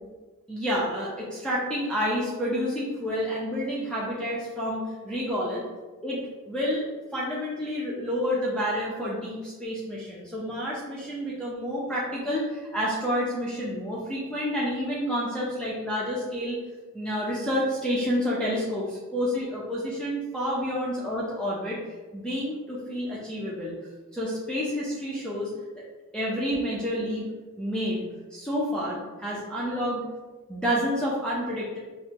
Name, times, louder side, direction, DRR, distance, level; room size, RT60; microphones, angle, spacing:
voice 1, 0.5-5.6 6.0-16.6 16.9-21.8 22.1-23.7 24.1-25.5 25.8-25.9 26.1-27.3 27.6-28.0 28.3-30.0 30.5-31.8, equal, 5° left, -7 dB, 0.7 m, -29 dB
4.1 x 2.2 x 2.9 m, 1.3 s
cardioid pair, 50°, 35 cm